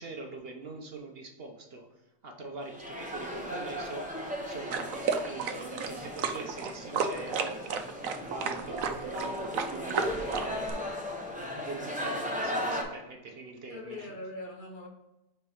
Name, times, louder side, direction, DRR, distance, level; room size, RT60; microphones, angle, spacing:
voice 1, 0.0-1.9 2.2-7.7 8.1-10.7 11.3-14.1, right 3 dB, 50° right, 1.0 m, -43 dB
sound 1, 2.6-12.8, equal, 5° right, 0.8 m, -37 dB
sound 2, 4.7-10.7, right 6 dB, 90° right, 1.1 m, -32 dB
voice 2, 7.6-8.1 13.7-14.9, left 2 dB, 45° left, 1.0 m, -42 dB
5.2 x 4.4 x 5.4 m
omnidirectional pair, 1.4 m